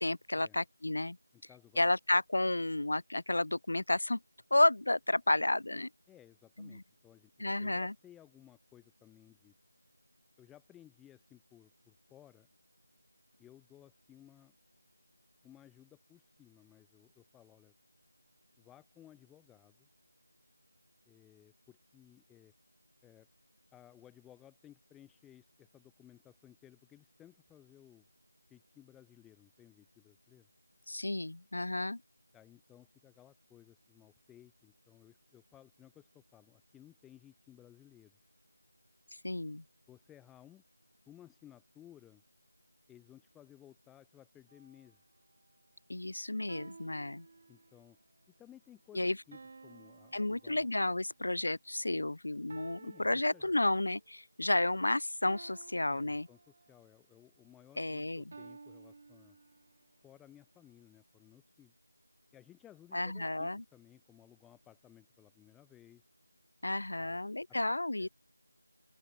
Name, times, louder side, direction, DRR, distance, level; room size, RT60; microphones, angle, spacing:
voice 1, 0.0-1.2 1.8-4.2 4.5-5.9 6.6-6.8 7.4-7.9 30.9-32.0 39.2-39.6 45.9-47.3 48.9-49.2 50.1-56.3 57.8-58.2 62.9-63.6 66.6-68.1, left 2 dB, 55° left, 2.0 m, -31 dB
voice 2, 1.3-1.9 6.1-9.5 10.4-12.5 13.4-14.6 15.4-17.7 18.6-19.9 21.0-22.5 23.0-23.3 23.7-28.1 28.5-30.5 32.3-38.2 39.9-40.6 41.1-42.2 42.9-45.0 47.5-48.0 48.4-50.7 52.8-53.7 55.9-59.4 60.0-61.7 62.3-66.0 66.9-67.2 68.0-68.1, left 12 dB, 5° left, 1.1 m, -59 dB
sound 1, 44.5-44.9 46.5-48.0 49.3-51.1 52.5-54.1 55.2-56.9 58.3-59.9, right 4 dB, 25° right, 3.0 m, -54 dB
open air
figure-of-eight pair, 180°, 0 cm